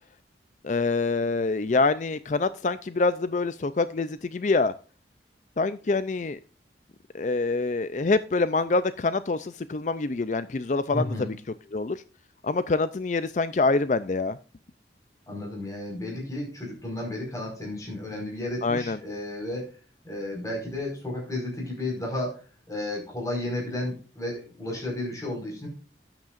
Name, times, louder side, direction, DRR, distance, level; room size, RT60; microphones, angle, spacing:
voice 1, 0.6-4.7 5.6-6.4 7.1-11.3 11.7-12.0 12.4-14.4 18.6-19.0, left 3 dB, 45° left, 0.4 m, -25 dB
voice 2, 10.9-11.4 15.3-19.7 20.0-25.7, left 1 dB, 20° left, 5.0 m, -33 dB
13.0 x 9.0 x 2.5 m
head